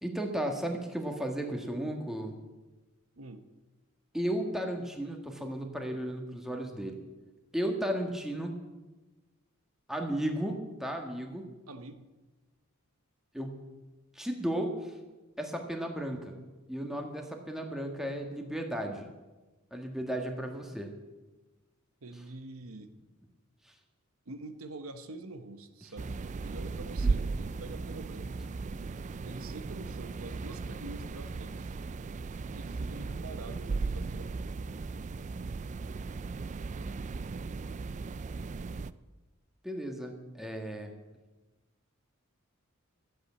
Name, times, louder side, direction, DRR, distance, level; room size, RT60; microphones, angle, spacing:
voice 1, 0.0-2.3 4.1-7.0 7.5-8.5 9.9-11.4 13.3-13.7 14.1-14.9 15.4-16.3 16.7-19.0 19.7-20.9 27.0-27.1 39.6-40.9, right 1 dB, ahead, 3 dB, 1.6 m, -34 dB
voice 2, 3.2-3.5 11.7-12.1 22.0-22.9 24.3-28.4 29.2-31.7 32.5-34.5, right 2 dB, 80° right, 9 dB, 1.0 m, -46 dB
sound 1, 26.0-38.9, right 4 dB, 35° right, 0.4 m, -36 dB
13.5 x 8.0 x 8.3 m, 1.2 s
head